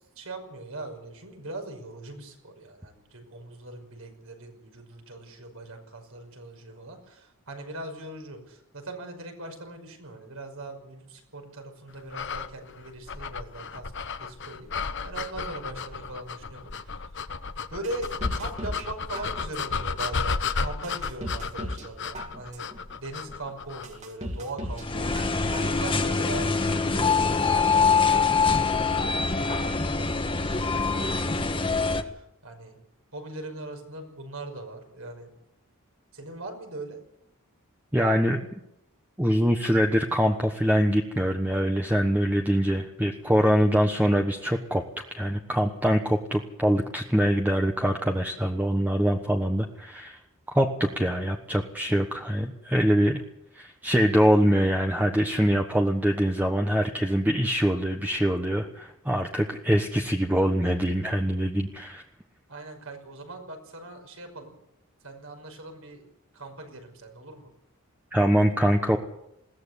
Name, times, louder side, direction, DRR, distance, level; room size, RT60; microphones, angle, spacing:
voice 1, 0.2-13.9 14.2-17.0 17.7-22.7 23.0-25.2 25.6-26.5 26.8-32.8 33.1-35.3 36.1-37.0 62.5-64.6 65.0-66.0 66.3-67.5, right 2 dB, 75° right, 5 dB, 5.6 m, -40 dB
sound 1, 12.1-24.0, left 5 dB, 55° left, 1.1 m, -33 dB
sound 2, 17.8-18.9 19.1-19.8 20.3-20.4 20.8-21.9 22.1-22.8 23.3-23.4 23.8-24.9 25.1-25.8 26.1-26.2, equal, 30° right, 2.5 m, -36 dB
sound 3, 24.8-32.0, left 4 dB, 25° left, 1.5 m, -24 dB
voice 2, 37.9-38.4 39.2-44.8 45.1-50.2 50.5-53.2 53.5-62.0 68.1-69.0, equal, 10° right, 3 dB, 1.2 m, -24 dB
21.0 x 17.0 x 8.3 m, 0.82 s
head